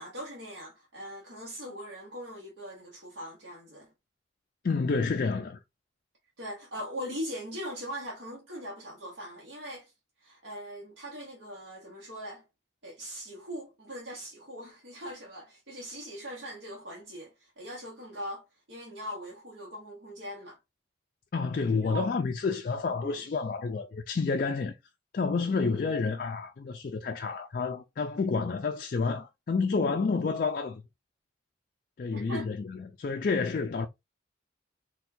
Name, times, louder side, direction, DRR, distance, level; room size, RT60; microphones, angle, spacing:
voice 1, 0.0-3.9 6.4-9.9 10.2-12.4 12.8-20.6 21.8-22.1 23.0-23.2 32.1-32.5, equal, 65° right, 1.0 m, -41 dB
voice 2, 4.6-5.6 21.3-24.7 25.1-30.8 32.0-33.9, left 4 dB, 45° left, 0.3 m, -29 dB
4.3 x 2.3 x 2.7 m
head